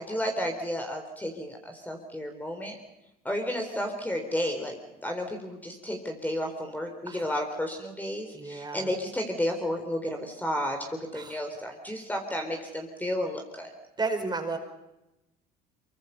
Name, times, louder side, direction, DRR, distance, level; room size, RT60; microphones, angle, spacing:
voice 1, 0.0-2.8 3.2-4.8 5.0-13.7, left 1 dB, 10° left, 3 dB, 3.8 m, -32 dB
voice 2, 8.3-8.9 11.1-11.4 14.0-14.6, right 3 dB, 20° right, 5 dB, 5.0 m, -32 dB
24.5 x 23.5 x 5.6 m, 0.93 s
supercardioid pair, 85°, 19 cm